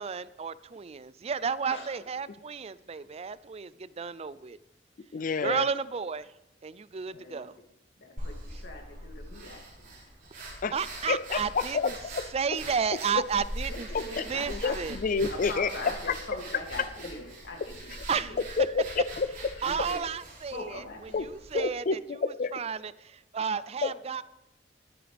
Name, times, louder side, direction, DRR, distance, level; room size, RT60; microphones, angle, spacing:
voice 1, 0.0-3.7 4.0-4.6 5.4-6.3 6.6-7.5 10.7-11.9 12.3-13.9 14.3-15.0 18.1-18.4 19.6-22.2 22.5-24.2, right 6 dB, 35° right, 17 dB, 0.4 m, -32 dB
voice 2, 5.1-5.7 10.6-10.7 11.1-12.3 13.1-13.2 13.9-15.7 18.6-19.3 21.1-21.3 21.5-22.6 23.8-23.9, left 4 dB, 45° left, 15 dB, 0.5 m, -29 dB
voice 3, 7.1-7.4 8.0-9.9 13.7-14.8 15.3-17.9 18.2-18.4 19.6-20.0 20.5-21.2, left 2 dB, 70° left, 1 dB, 2.7 m, -42 dB
sound 1, 8.2-21.6, right 1 dB, 50° right, 6.3 m, -42 dB
23.5 x 8.8 x 3.5 m, 0.89 s
head